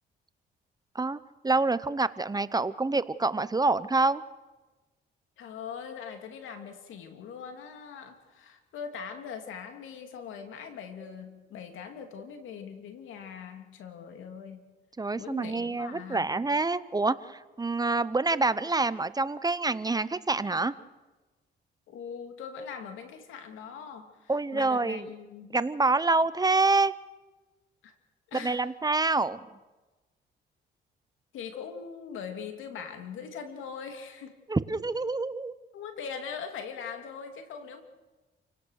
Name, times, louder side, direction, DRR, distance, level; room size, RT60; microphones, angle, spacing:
voice 1, 1.4-4.2 15.0-20.7 24.3-25.0 25.5-26.9 28.4-29.4 34.5-35.5, right 3 dB, 20° right, 15 dB, 0.8 m, -27 dB
voice 2, 5.4-14.7 15.2-16.3 21.9-25.6 27.8-27.9 28.3-28.6 31.3-34.4 35.7-37.8, left 6 dB, 85° left, 6 dB, 2.8 m, -41 dB
29.0 x 18.0 x 6.5 m, 1.2 s
cardioid pair, 90°, 20 cm